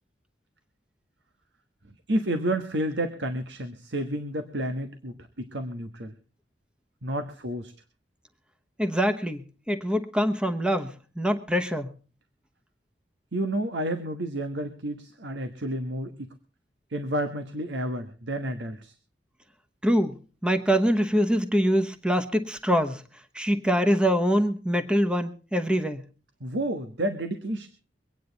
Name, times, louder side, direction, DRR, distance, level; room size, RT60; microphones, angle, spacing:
voice 1, 2.1-6.1 7.0-7.7 13.3-16.3 16.9-18.9 26.4-27.7, right 1 dB, 90° right, 8 dB, 1.4 m, -30 dB
voice 2, 8.8-11.9 19.8-23.0 23.3-26.0, equal, 5° right, 8 dB, 1.1 m, -24 dB
24.0 x 9.4 x 4.0 m, 0.37 s
head